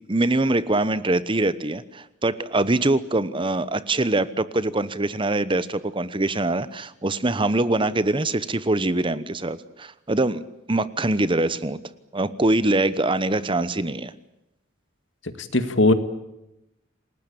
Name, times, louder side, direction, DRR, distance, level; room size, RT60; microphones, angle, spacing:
voice 1, 0.1-10.4 10.7-11.8 12.1-14.1, right 2 dB, 25° right, 15 dB, 1.0 m, -23 dB
voice 2, 15.2-15.9, left 2 dB, 70° left, 10 dB, 2.1 m, -20 dB
29.0 x 19.0 x 8.6 m, 0.88 s
head